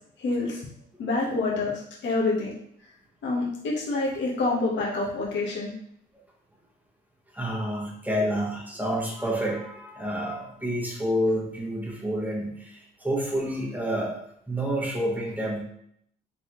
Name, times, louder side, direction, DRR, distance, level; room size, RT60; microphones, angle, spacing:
voice 1, 0.2-0.6 1.0-2.5 3.2-5.7, left 3 dB, 65° left, -5 dB, 1.2 m, -27 dB
voice 2, 7.3-15.6, equal, 10° right, -2 dB, 1.3 m, -29 dB
3.9 x 3.8 x 3.1 m, 0.70 s
cardioid pair, 90°, 20 cm